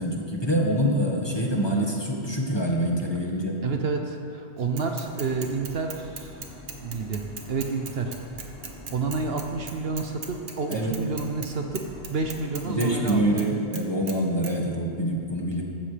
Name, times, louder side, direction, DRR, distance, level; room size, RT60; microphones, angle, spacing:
voice 1, 0.0-3.6 10.7-10.9 12.6-15.6, right 1 dB, 20° left, -2 dB, 1.5 m, -25 dB
voice 2, 3.6-6.4 6.8-8.1 8.9-11.8 12.1-13.5, right 4 dB, 60° right, 4 dB, 1.0 m, -29 dB
Bicycle / Mechanisms, 4.8-11.5 11.7-13.5 13.7-14.2 14.4-14.5, right 5 dB, 75° right, 1.5 m, -39 dB
sound 1, 5.0-13.4, left 1 dB, 55° left, 1.6 m, -44 dB
15.0 x 13.0 x 3.3 m, 2.4 s
omnidirectional pair, 1.2 m